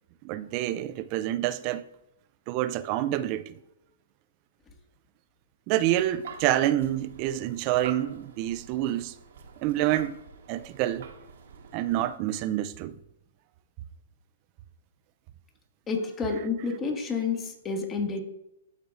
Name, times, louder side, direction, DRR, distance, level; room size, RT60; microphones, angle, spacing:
voice 1, 0.2-1.9 2.5-3.6 5.7-9.1 9.6-10.2 10.5-11.1 11.7-13.0, right 13 dB, 40° right, 0.4 m, -27 dB
sound 1, 6.0-12.2, right 6 dB, 70° right, 1.2 m, -46 dB
voice 2, 15.9-18.2, left 4 dB, 20° left, 1.5 m, -29 dB
12.5 x 4.6 x 2.5 m
hypercardioid pair, 125°, 0 cm